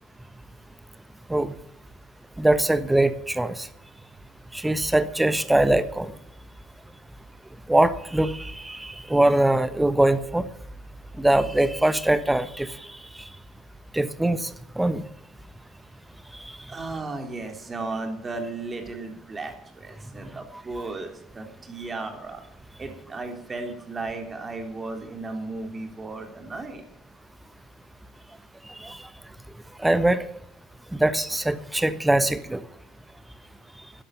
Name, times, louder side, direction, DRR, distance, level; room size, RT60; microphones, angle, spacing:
voice 1, 2.4-3.7 4.5-6.1 7.7-10.4 11.2-12.7 13.9-14.5 14.8-15.0 28.8-29.0 29.8-30.2 30.9-32.6, right 1 dB, 5° right, 13 dB, 1.2 m, -22 dB
voice 2, 16.7-22.4 22.8-26.8, right 3 dB, 25° right, 4 dB, 3.7 m, -35 dB
12.5 x 11.5 x 9.0 m, 0.76 s
figure-of-eight pair, 60°, 0 cm